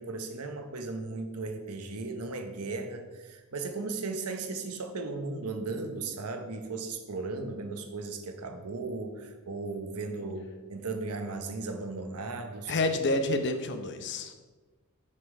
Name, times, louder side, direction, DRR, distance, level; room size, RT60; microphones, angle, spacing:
voice 1, 0.0-12.7, right 3 dB, 85° right, 7 dB, 0.9 m, -36 dB
voice 2, 12.7-14.3, left 2 dB, 50° left, 7 dB, 0.7 m, -28 dB
6.6 x 5.5 x 4.8 m, 1.2 s
head